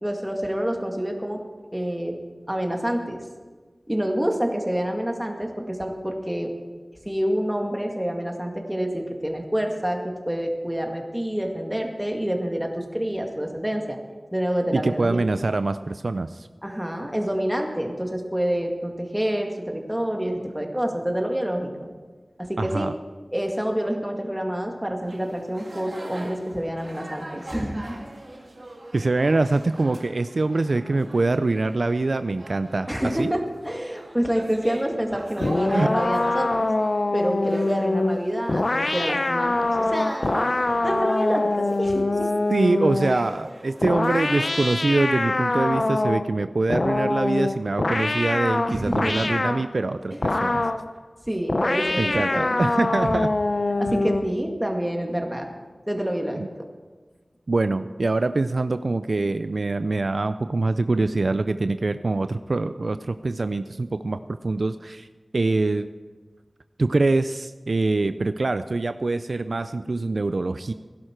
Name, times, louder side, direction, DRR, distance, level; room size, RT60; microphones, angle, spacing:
voice 1, 0.0-1.4 1.7-2.1 2.5-3.2 3.9-6.5 7.1-14.0 14.3-15.2 16.6-21.9 22.4-22.9 23.3-28.0 32.9-36.5 37.1-40.5 40.8-42.3 48.7-49.3 50.1-50.6 51.2-52.6 53.1-53.2 53.8-55.5 55.9-56.5, equal, 10° right, 2 dB, 2.0 m, -27 dB
voice 2, 14.7-16.5 22.6-22.9 28.9-32.9 33.2-33.3 35.4-35.5 35.7-35.9 42.5-50.1 50.4-50.6 52.0-53.3 56.4-56.5 57.5-65.1 65.3-65.9 66.8-70.7, right 3 dB, 65° right, 11 dB, 0.4 m, -24 dB
sound 1, 25.0-44.8, right 1 dB, 50° right, 1.9 m, -42 dB
sound 2, 35.4-43.2 43.8-46.3 46.7-49.7 50.2-50.9 51.5-54.3, left 2 dB, 55° left, 0.7 m, -24 dB
17.0 x 11.5 x 4.5 m, 1.4 s
wide cardioid pair, 65°, 0 cm